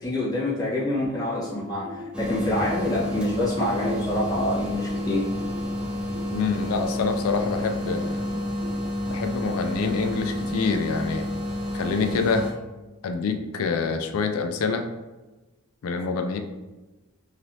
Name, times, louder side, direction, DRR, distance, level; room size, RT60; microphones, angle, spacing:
voice 1, 0.0-5.2, left 1 dB, 15° left, -9 dB, 1.1 m, -26 dB
sound 1, 0.6-8.9, left 1 dB, 40° right, 0.7 m, -41 dB
sound 2, 2.1-12.5, left 1 dB, 5° right, 0.4 m, -29 dB
voice 2, 6.3-8.3 9.1-11.2 11.7-12.5 13.0-14.8 15.8-16.4, left 4 dB, 80° left, 6 dB, 0.4 m, -26 dB
3.2 x 2.8 x 2.6 m, 1.2 s
head